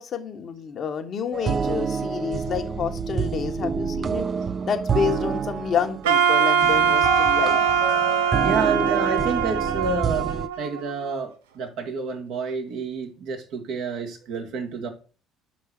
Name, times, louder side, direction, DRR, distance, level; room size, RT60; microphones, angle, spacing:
voice 1, 0.0-4.2 4.6-7.6, left 7 dB, 50° left, 1.3 m, -29 dB
sound 1, 1.3-10.5, right 5 dB, 40° right, 0.6 m, -27 dB
Wind instrument woodwind instrument, 6.0-11.1, right 7 dB, 85° right, 0.7 m, -22 dB
voice 2, 8.4-14.9, right 5 dB, 65° right, 1.8 m, -29 dB
5.4 x 5.3 x 6.1 m
hypercardioid pair, 65°, 0 cm